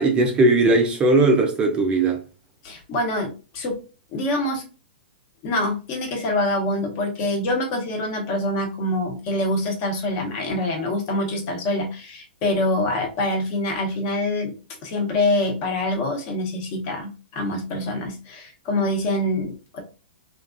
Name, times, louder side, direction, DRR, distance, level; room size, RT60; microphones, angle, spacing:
voice 1, 0.0-2.2, right 2 dB, 15° right, 0.4 m, -18 dB
voice 2, 2.6-3.8 4.1-4.6 5.4-14.5 14.8-19.8, left 1 dB, 35° left, 0.9 m, -25 dB
3.3 x 2.4 x 2.5 m
hypercardioid pair, 140°, 6 cm